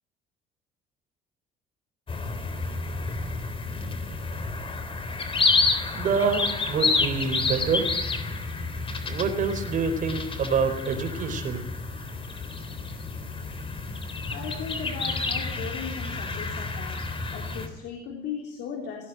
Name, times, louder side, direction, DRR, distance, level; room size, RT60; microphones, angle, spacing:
sound 1, 2.1-17.7, left 3 dB, 30° left, 3.3 m, -29 dB
voice 1, 5.9-6.4 6.7-7.9 9.0-11.7, right 5 dB, 50° right, 6 dB, 4.4 m, -26 dB
voice 2, 14.3-17.0 17.3-19.1, left 7 dB, 80° left, 1 dB, 3.7 m, -37 dB
17.5 x 17.5 x 9.2 m, 0.93 s
cardioid pair, 110°, 17 cm